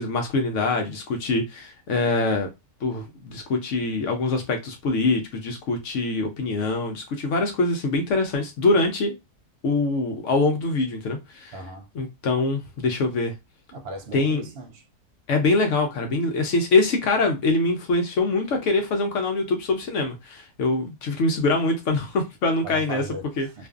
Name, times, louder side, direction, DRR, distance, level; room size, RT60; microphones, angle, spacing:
voice 1, 0.0-2.5 2.8-9.1 9.6-11.5 11.9-13.3 14.1-14.5 15.3-23.0 23.4-23.7, left 3 dB, 65° left, 0.8 m, -24 dB
voice 2, 11.5-11.9 13.7-14.8 22.6-23.7, right 2 dB, 70° right, 0.6 m, -37 dB
2.5 x 2.4 x 2.4 m
omnidirectional pair, 1.6 m